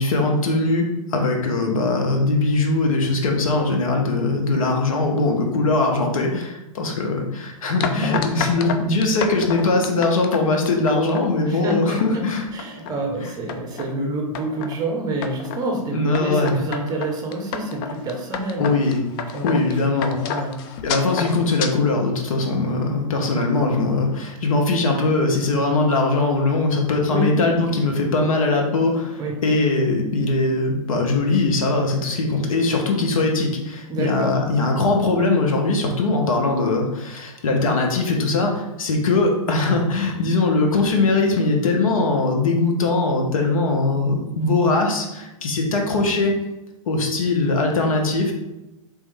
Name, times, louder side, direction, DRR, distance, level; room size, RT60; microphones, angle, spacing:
voice 1, 0.0-12.4 13.2-13.3 15.9-16.6 18.6-19.0 19.4-20.4 20.8-46.3 46.9-48.3, left 3 dB, 70° left, 2 dB, 0.9 m, -21 dB
sound 1, 7.8-11.3 11.7-12.1 12.5-13.0 13.5-13.9 14.3-14.7 15.2-15.6 16.1-21.7, left 6 dB, 40° left, 0.4 m, -30 dB
voice 2, 7.9-8.3 11.5-18.7 19.3-19.6 20.2-20.7 27.1-27.3 29.2-29.4 33.9-34.4, right 1 dB, 20° right, 1 dB, 0.8 m, -27 dB
3.4 x 3.1 x 3.4 m, 0.96 s
hypercardioid pair, 110°, 18 cm